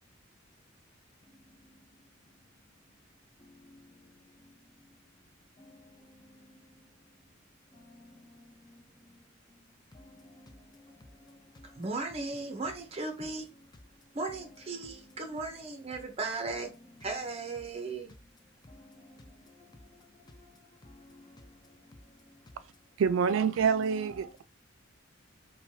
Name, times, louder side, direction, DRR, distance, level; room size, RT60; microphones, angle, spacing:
voice 1, 1.4-1.7 3.4-4.1 4.4-4.5 5.6-6.8 7.7-8.8 9.1-9.2 9.9-11.8 14.7-15.3 18.6-22.4, left 1 dB, 20° left, 0.5 m, -56 dB
voice 2, 11.8-13.5 14.1-16.7 17.0-18.1, right 3 dB, 30° right, 0.6 m, -36 dB
voice 3, 23.0-24.4, right 6 dB, 70° right, 0.3 m, -27 dB
3.0 x 2.2 x 2.7 m
head